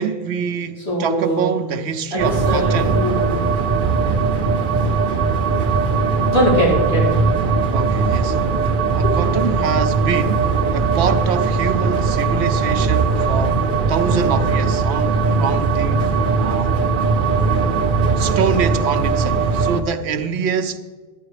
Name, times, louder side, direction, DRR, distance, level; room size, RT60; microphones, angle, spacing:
voice 1, 0.0-3.0 7.7-8.4 8.9-13.6 13.9-16.1 16.4-16.8 18.2-20.8, right 6 dB, 85° right, 0.9 m, -25 dB
voice 2, 0.8-1.6 2.1-3.5 6.3-7.2 9.0-9.1 16.4-16.9 18.0-18.4, equal, 85° left, 4.7 m, -22 dB
sound 1, 2.2-19.8, right 4 dB, 55° right, 0.8 m, -19 dB
11.0 x 8.9 x 4.9 m
omnidirectional pair, 1.1 m